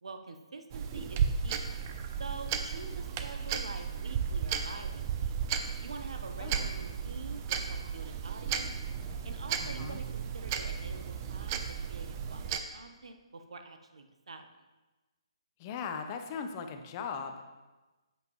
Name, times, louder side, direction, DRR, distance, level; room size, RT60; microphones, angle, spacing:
voice 1, 0.0-1.7 2.2-5.3 5.8-8.7 9.2-11.6 11.9-14.5, right 3 dB, 75° right, 6 dB, 1.0 m, -46 dB
sound 1, 0.7-12.6, right 7 dB, 35° right, 0.6 m, -34 dB
voice 2, 9.6-10.0 15.6-17.4, left 6 dB, 30° left, 6 dB, 0.9 m, -39 dB
10.5 x 8.3 x 3.1 m, 1.2 s
hypercardioid pair, 145°, 3 cm